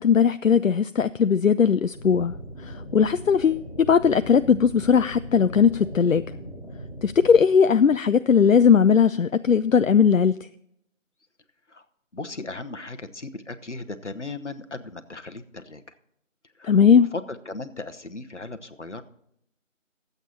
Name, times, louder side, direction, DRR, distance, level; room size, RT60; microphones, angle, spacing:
voice 1, 0.0-2.3 2.6-6.2 7.0-10.4 16.6-17.1, left 6 dB, 80° left, 12 dB, 0.5 m, -19 dB
sound 1, 1.9-7.4, equal, 25° left, 3.7 m, -39 dB
voice 2, 12.1-16.0 16.5-19.0, left 3 dB, 65° left, 8 dB, 1.1 m, -37 dB
23.0 x 8.1 x 2.8 m, 0.74 s
figure-of-eight pair, 170°, 39 cm